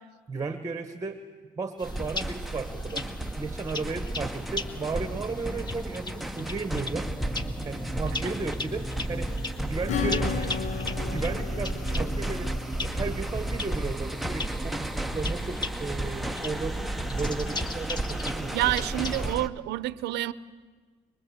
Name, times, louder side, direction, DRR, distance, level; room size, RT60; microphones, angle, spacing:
voice 1, 0.3-1.2 1.6-3.0 3.3-7.1 7.6-9.3 9.6-10.5 11.1-18.7, right 4 dB, 20° right, 8 dB, 1.3 m, -34 dB
sound 1, 1.8-19.4, left 3 dB, 25° left, 1.4 m, -40 dB
sound 2, 1.8-19.5, right 1 dB, ahead, 0.8 m, -32 dB
Acoustic guitar / Strum, 9.9-14.2, left 7 dB, 45° left, 0.6 m, -35 dB
voice 2, 18.5-20.3, right 16 dB, 80° right, 16 dB, 0.8 m, -28 dB
24.0 x 22.5 x 8.1 m, 1.5 s
cardioid pair, 110°, 17 cm